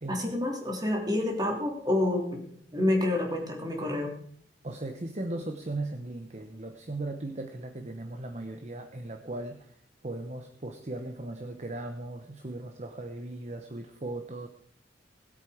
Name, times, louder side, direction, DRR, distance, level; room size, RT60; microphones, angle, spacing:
voice 1, 0.1-2.4 2.7-4.1, left 1 dB, 20° right, 1 dB, 3.0 m, -28 dB
voice 2, 4.6-9.8 10.0-14.5, right 2 dB, 40° right, 6 dB, 0.9 m, -37 dB
19.5 x 8.2 x 4.9 m, 0.62 s
head